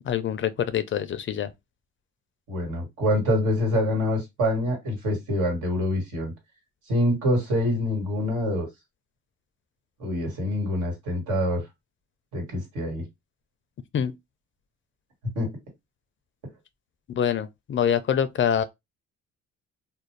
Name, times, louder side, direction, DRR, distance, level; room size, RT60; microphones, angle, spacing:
voice 1, 0.0-1.5 13.9-14.1 17.1-18.6, left 8 dB, 40° left, 0.4 m, -25 dB
voice 2, 2.5-6.3 6.9-8.7 10.0-11.6 12.3-13.0 15.3-15.5, left 1 dB, 85° right, 1.5 m, -25 dB
2.5 x 2.0 x 3.0 m
cardioid pair, 90°, 30 cm